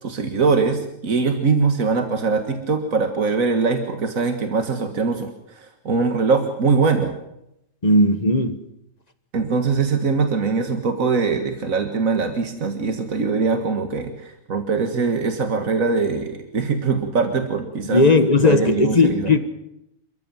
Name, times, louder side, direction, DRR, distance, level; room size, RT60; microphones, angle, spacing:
voice 1, 0.0-7.1 9.3-18.1 18.4-19.3, right 4 dB, 85° right, 2.1 m, -22 dB
voice 2, 7.8-8.6 17.9-19.4, left 2 dB, 30° left, 1.5 m, -16 dB
27.5 x 14.5 x 7.6 m
omnidirectional pair, 1.4 m